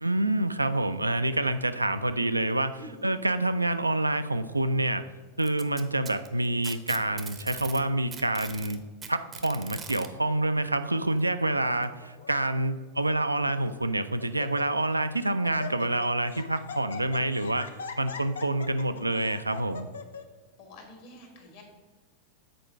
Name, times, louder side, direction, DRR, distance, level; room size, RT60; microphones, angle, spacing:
voice 1, 0.0-5.0 5.4-8.8 9.1-17.7 18.0-19.9, right 1 dB, 85° right, 11 dB, 0.3 m, -27 dB
voice 2, 2.7-3.0 20.6-21.6, left 1 dB, 50° left, 2 dB, 1.7 m, -47 dB
Packing tape duct tape, 5.4-7.8 8.1-10.1 11.2-11.3 11.8-11.9 12.8-12.9, right 6 dB, 25° right, 0.6 m, -41 dB
Laughter, 11.9-12.3 13.1-13.2 13.6-13.9 14.2-15.0 15.2-20.2, left 5 dB, 65° left, 0.5 m, -41 dB
7.7 x 4.4 x 4.3 m, 1.5 s
figure-of-eight pair, 90°, 0 cm